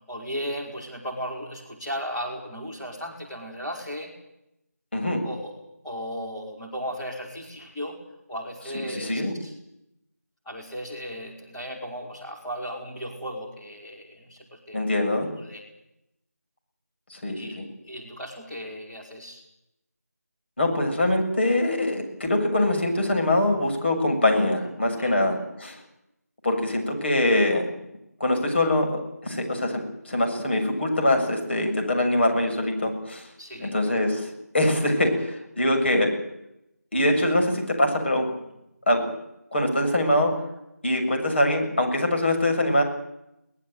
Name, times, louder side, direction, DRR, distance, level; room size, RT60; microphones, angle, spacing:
voice 1, 0.1-4.1 5.2-5.5 5.8-8.0 8.3-9.5 10.4-14.8 15.3-15.6 17.3-19.4 25.0-25.3 33.4-33.7, equal, 5° left, -7 dB, 3.4 m, -36 dB
voice 2, 4.9-5.2 8.9-9.3 14.7-15.3 17.1-17.7 20.6-25.8 26.4-27.7 28.2-33.3 33.6-36.1 36.9-38.3 38.9-39.1 39.5-40.4 40.8-42.8, left 1 dB, 40° left, 2 dB, 7.2 m, -23 dB
22.5 x 19.5 x 9.4 m, 0.84 s
figure-of-eight pair, 170°, 9 cm